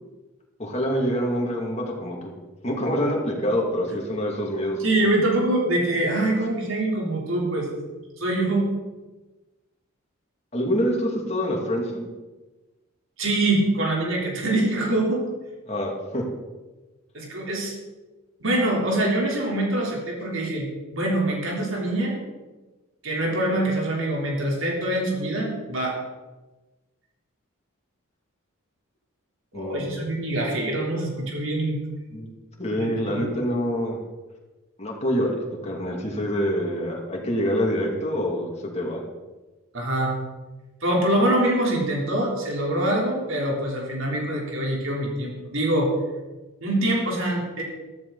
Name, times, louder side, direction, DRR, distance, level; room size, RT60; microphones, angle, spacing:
voice 1, 0.6-2.3 2.6-5.1 10.5-12.1 15.7-16.2 29.5-29.8 32.1-32.3 32.6-34.0 34.8-35.4 35.6-39.0, equal, 30° left, -1 dB, 2.5 m, -26 dB
voice 2, 4.8-7.7 8.2-8.7 13.2-15.2 17.1-17.7 18.4-22.2 23.0-26.0 29.5-31.8 32.8-32.9 33.1-33.3 39.7-40.1 40.8-45.9 46.6-47.6, right 1 dB, 70° right, -2 dB, 3.7 m, -24 dB
14.0 x 13.5 x 4.1 m, 1.2 s
head